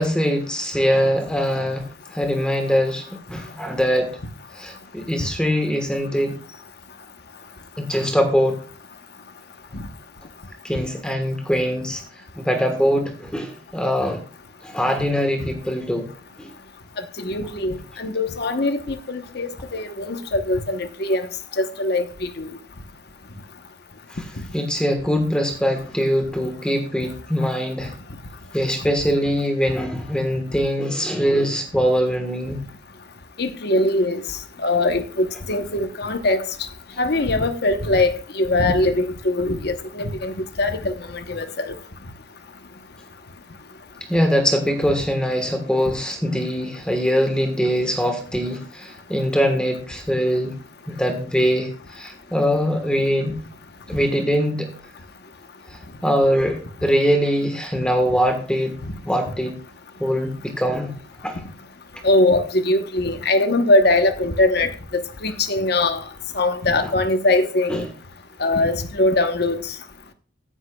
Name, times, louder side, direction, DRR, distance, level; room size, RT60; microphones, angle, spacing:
voice 1, 0.0-4.1 4.5-6.4 7.8-8.6 10.6-12.0 12.3-14.2 14.6-16.1 16.4-16.5 24.1-24.2 24.5-27.9 28.5-32.6 44.1-50.5 50.9-53.4 53.9-54.7 55.7-58.8 59.0-59.6 60.0-60.9 61.2-61.4 66.8-66.9 67.7-67.9, equal, 5° left, 1.3 m, -22 dB
voice 2, 17.0-21.3 21.6-22.5 24.4-24.5 33.4-34.2 34.6-36.4 37.0-41.8 62.0-66.0 66.3-67.8 68.4-69.7, left 2 dB, 55° left, 1.0 m, -22 dB
14.5 x 10.0 x 2.3 m
head